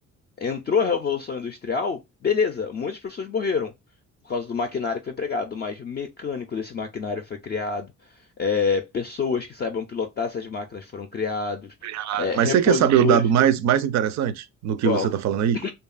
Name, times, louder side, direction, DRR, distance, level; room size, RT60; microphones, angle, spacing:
voice 1, 0.4-3.7 4.2-7.9 8.4-13.2 14.8-15.1 15.5-15.7, left 5 dB, 35° left, 0.4 m, -27 dB
voice 2, 11.8-15.6, right 9 dB, 65° right, 0.4 m, -21 dB
2.8 x 2.3 x 2.3 m
cardioid pair, 90°, 30 cm